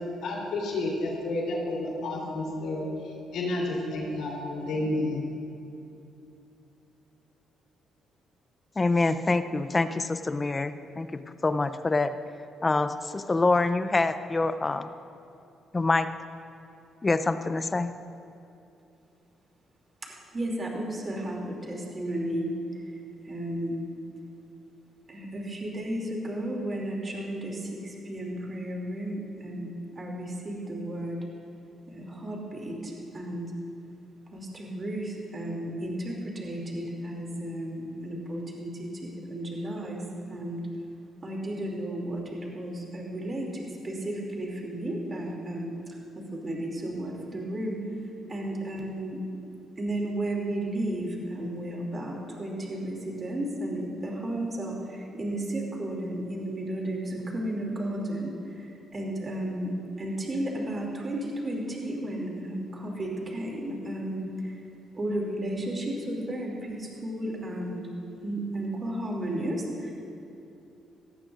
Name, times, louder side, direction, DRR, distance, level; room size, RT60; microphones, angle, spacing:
voice 1, 0.2-2.9 3.3-5.2, left 2 dB, 80° left, -2 dB, 3.4 m, -30 dB
voice 2, 8.8-11.1 11.4-12.1 12.6-14.9 15.7-16.1 17.0-17.9, left 3 dB, 25° left, 10 dB, 0.6 m, -25 dB
voice 3, 20.0-22.5 22.7-22.9 23.2-23.8 25.1-29.7 30.0-31.2 31.9-33.5 34.3-40.0 40.3-40.6 41.2-45.7 46.1-47.8 48.3-49.2 49.8-59.7 60.0-64.6 64.9-67.8 68.2-69.9, right 1 dB, 35° right, -1 dB, 2.8 m, -33 dB
18.0 x 14.0 x 2.6 m, 2.8 s
cardioid pair, 90°, 0 cm